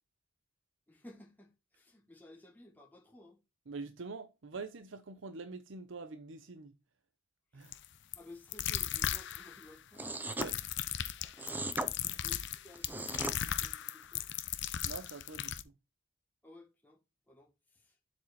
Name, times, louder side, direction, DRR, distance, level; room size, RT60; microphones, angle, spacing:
voice 1, 0.9-3.4 7.5-7.9 8.1-10.1 11.2-14.3 16.4-17.0 17.3-18.0, left 2 dB, 10° left, 1.5 m, -56 dB
voice 2, 3.7-6.8 7.5-7.7 10.4-10.6 12.0-12.2 14.8-15.7, right 4 dB, 65° right, 0.7 m, -45 dB
sound 1, 7.7-7.9 8.1-8.2 8.5-9.7 10.3-15.6, left 10 dB, 65° left, 0.7 m, -36 dB
sound 2, 10.0-10.5 11.4-11.9 12.7-13.4, right 1 dB, 10° right, 0.6 m, -37 dB
7.6 x 4.4 x 4.2 m
head